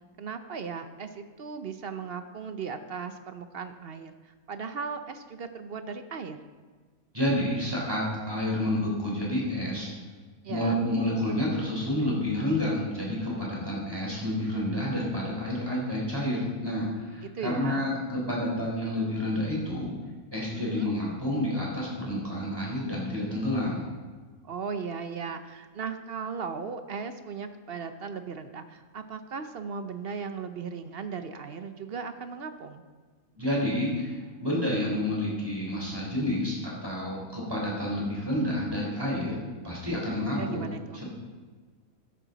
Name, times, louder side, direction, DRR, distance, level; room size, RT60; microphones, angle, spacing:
voice 1, 0.2-6.4 10.4-10.8 17.2-17.9 20.5-20.9 24.4-32.8 40.3-41.0, right 5 dB, 55° right, 9 dB, 0.8 m, -37 dB
voice 2, 7.1-9.9 10.5-19.9 20.3-23.8 33.3-34.1 34.4-39.4 39.6-40.7 40.9-41.1, left 1 dB, 15° right, -5 dB, 4.1 m, -29 dB
13.5 x 11.0 x 4.0 m, 1.4 s
omnidirectional pair, 1.5 m